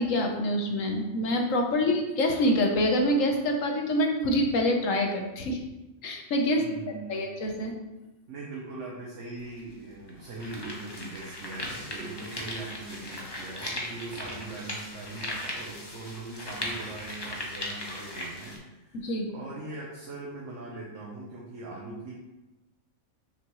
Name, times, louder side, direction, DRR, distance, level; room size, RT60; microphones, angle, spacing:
voice 1, 0.0-5.6 6.0-6.6 7.1-7.7 19.0-19.3, left 1 dB, 70° left, 2 dB, 1.3 m, -26 dB
voice 2, 6.6-7.2 8.3-22.1, right 2 dB, 60° right, -4 dB, 1.4 m, -41 dB
sound 1, 9.4-9.5 10.1-18.6, left 1 dB, 20° left, 0.9 m, -38 dB
6.5 x 5.7 x 3.1 m, 1.0 s
omnidirectional pair, 1.4 m